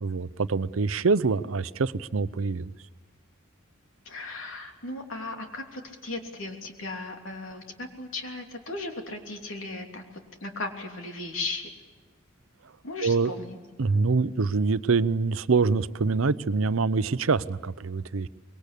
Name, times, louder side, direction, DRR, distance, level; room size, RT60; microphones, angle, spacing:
voice 1, 0.0-2.7 13.0-13.3 13.8-18.3, right 4 dB, 90° right, 15 dB, 0.7 m, -25 dB
voice 2, 4.0-10.0 10.4-11.7 12.8-13.6, left 2 dB, 80° left, 3 dB, 3.2 m, -36 dB
25.0 x 22.0 x 8.4 m, 1.4 s
head